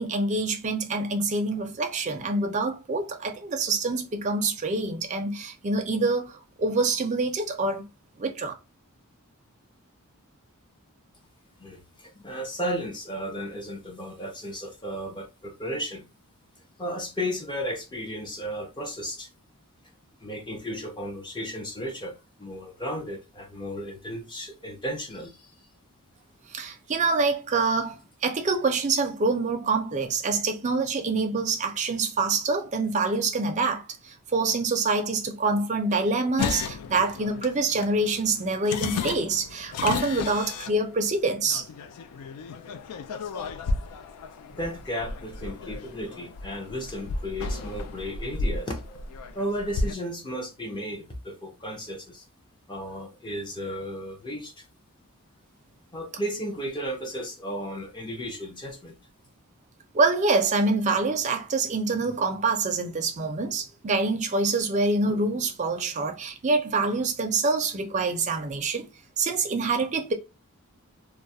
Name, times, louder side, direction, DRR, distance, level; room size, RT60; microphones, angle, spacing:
voice 1, 0.0-7.9 8.2-8.5 26.5-41.6 59.9-68.9 69.2-70.1, right 3 dB, 30° right, 0.4 m, -26 dB
voice 2, 11.6-16.0 16.8-19.3 20.2-25.5 44.5-49.0 49.3-52.2 52.7-54.6 55.9-59.0, equal, 20° left, 0.6 m, -34 dB
sound 1, 36.4-49.9, left 4 dB, 85° left, 0.3 m, -34 dB
2.3 x 2.0 x 2.6 m
head